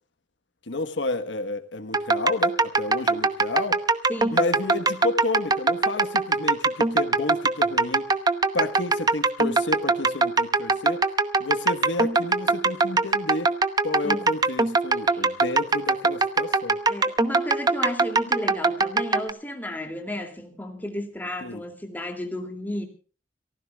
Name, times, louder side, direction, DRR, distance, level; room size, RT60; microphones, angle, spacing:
voice 1, 0.7-3.8 4.3-8.1 8.5-11.1 11.4-13.5 13.8-16.8 21.4-21.6, left 3 dB, 85° left, 1.4 m, -31 dB
sound 1, 1.9-19.3, right 3 dB, 20° right, 0.9 m, -22 dB
voice 2, 4.1-4.4 14.0-14.3 15.1-15.3 16.9-22.8, left 1 dB, 10° left, 2.6 m, -33 dB
29.5 x 15.0 x 2.4 m
head